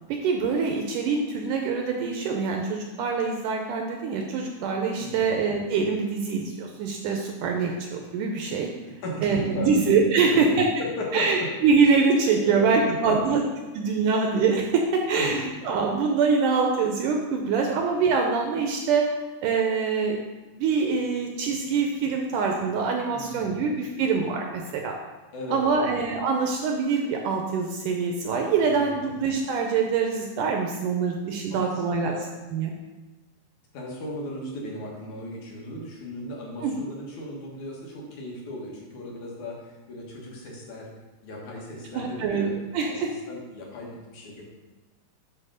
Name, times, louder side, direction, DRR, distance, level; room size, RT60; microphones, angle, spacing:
voice 1, 0.1-8.7 9.2-10.7 11.1-13.4 13.8-19.1 19.4-20.2 20.5-25.0 25.5-32.1 32.5-32.7 36.6-36.8 41.9-42.4 42.7-43.1, right 5 dB, 75° right, 2 dB, 1.9 m, -24 dB
voice 2, 5.0-5.3 9.0-9.8 10.3-10.4 10.8-11.5 12.4-13.4 15.1-15.3 23.1-23.6 25.3-25.9 28.6-29.2 31.5-32.3 33.7-40.9 41.2-42.6 42.9-44.4, left 1 dB, 60° left, -2 dB, 2.6 m, -36 dB
8.8 x 4.1 x 6.3 m, 1.2 s
omnidirectional pair, 4.2 m